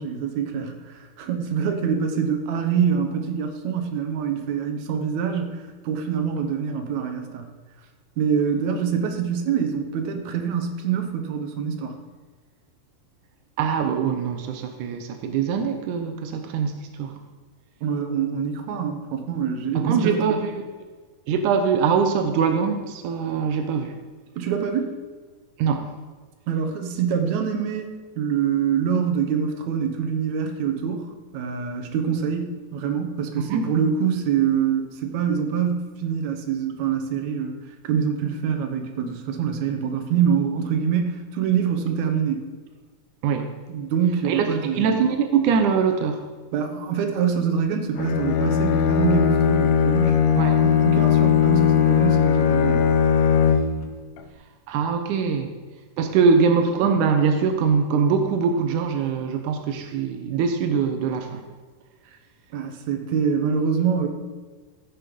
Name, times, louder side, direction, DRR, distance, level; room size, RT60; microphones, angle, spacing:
voice 1, 0.0-7.5 8.2-12.0 17.8-20.5 24.4-24.9 26.5-42.5 43.7-44.9 46.5-50.2 50.6-52.9 62.5-64.1, right 7 dB, 70° right, 5 dB, 1.9 m, -25 dB
voice 2, 13.6-17.2 19.8-20.4 21.3-24.0 25.6-25.9 33.5-33.7 43.2-43.5 44.3-44.5 44.7-46.3 50.4-50.6 54.7-55.5 56.0-61.4, right 6 dB, 90° right, 6 dB, 1.7 m, -22 dB
Bowed string instrument, 48.0-53.9, left 7 dB, 75° left, 2.6 m, -19 dB
15.0 x 6.5 x 5.2 m, 1.4 s
omnidirectional pair, 4.6 m